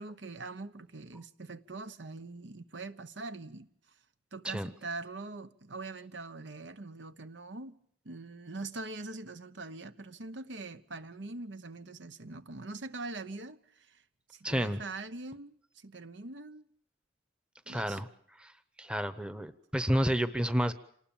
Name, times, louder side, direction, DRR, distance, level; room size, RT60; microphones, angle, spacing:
voice 1, 0.0-3.7 4.3-14.0 14.3-16.7 17.7-18.0, right 3 dB, 75° right, 1.1 m, -43 dB
voice 2, 14.4-14.8 17.7-18.1 18.4-18.5 18.8-20.7, equal, 5° right, 0.9 m, -30 dB
27.0 x 19.5 x 7.2 m
head